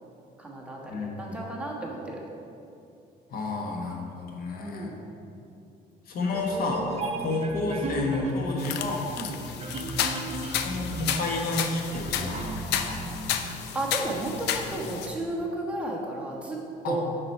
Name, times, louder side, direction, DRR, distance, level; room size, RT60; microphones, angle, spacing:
voice 1, 0.4-2.2 4.6-5.0 7.3-7.7 9.2-9.3 13.7-16.6 16.8-17.0, right 2 dB, 5° right, -3 dB, 1.2 m, -33 dB
voice 2, 0.9-1.4 3.3-4.9 6.1-9.1 10.6-13.0 16.8-17.0, left 2 dB, 60° left, 0 dB, 1.1 m, -30 dB
sound 1, 6.3-13.5, right 3 dB, 40° right, 0.7 m, -36 dB
sound 2, 8.6-15.1, left 8 dB, 80° left, 0.5 m, -32 dB
6.7 x 5.9 x 4.4 m, 2.7 s
cardioid pair, 110°, 17 cm